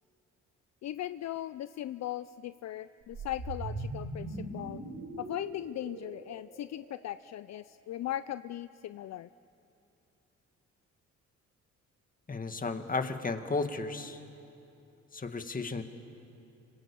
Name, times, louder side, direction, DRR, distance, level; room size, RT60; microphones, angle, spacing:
voice 1, 0.8-4.8 5.2-9.3, left 13 dB, 60° left, 14 dB, 0.5 m, -38 dB
sound 1, 3.0-7.3, right 2 dB, 70° right, 7.0 m, -41 dB
voice 2, 12.3-14.2 15.1-15.8, left 3 dB, 30° left, 7 dB, 2.0 m, -34 dB
26.0 x 25.5 x 8.6 m, 2.8 s
cardioid pair, 90°, 30 cm